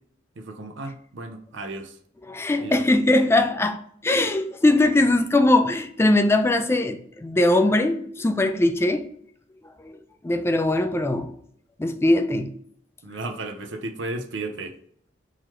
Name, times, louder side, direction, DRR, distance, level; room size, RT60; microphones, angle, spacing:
voice 1, 0.4-2.0 2.6-2.8 13.0-14.8, right 2 dB, 85° right, 0.7 m, -34 dB
voice 2, 2.3-9.1 9.8-10.0 10.2-11.3 11.8-12.5, left 2 dB, 15° left, 0.3 m, -21 dB
3.8 x 3.1 x 2.9 m
head